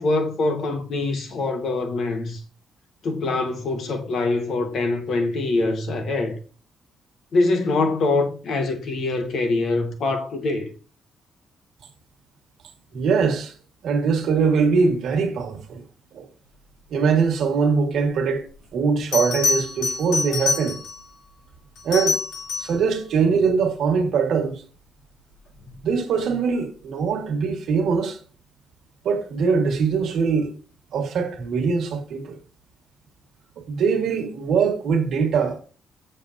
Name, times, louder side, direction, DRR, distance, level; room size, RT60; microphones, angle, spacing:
voice 1, 0.0-2.4 3.0-6.4 7.3-10.7, left 3 dB, 50° left, 1.1 m, -24 dB
voice 2, 12.9-13.5 13.8-15.8 16.1-16.3 16.9-18.4 18.7-20.8 21.8-22.2 22.6-24.6 25.8-28.2 29.0-30.6 30.9-32.4 33.7-35.6, right 5 dB, 60° right, 1.4 m, -22 dB
Bell, 18.5-18.6 19.1-21.1 21.8-22.8 25.5-25.8, left 4 dB, 85° left, 2.7 m, -26 dB
7.2 x 6.8 x 2.6 m
cardioid pair, 175°, 0 cm